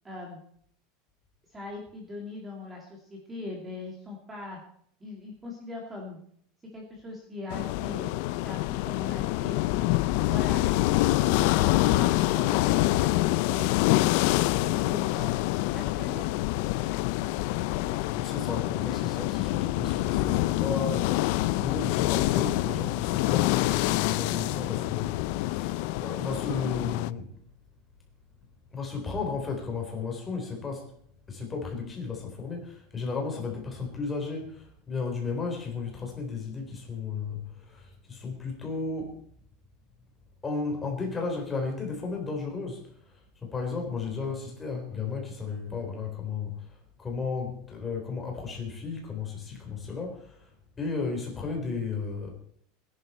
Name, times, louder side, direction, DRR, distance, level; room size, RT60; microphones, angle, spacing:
voice 1, 0.0-0.4 1.5-4.6 5.0-6.2 6.7-8.1 8.4-9.9 10.3-10.6 14.6-16.3, left 2 dB, 10° right, 0 dB, 2.3 m, -40 dB
sound 1, 7.5-27.1, left 17 dB, 55° left, 0.5 m, -26 dB
voice 2, 18.1-27.3 28.7-30.9 31.3-39.1 40.4-43.1 43.4-50.5 50.8-52.3, left 4 dB, 15° left, 1 dB, 3.9 m, -34 dB
20.5 x 10.5 x 4.4 m, 0.65 s
supercardioid pair, 175°, 0 cm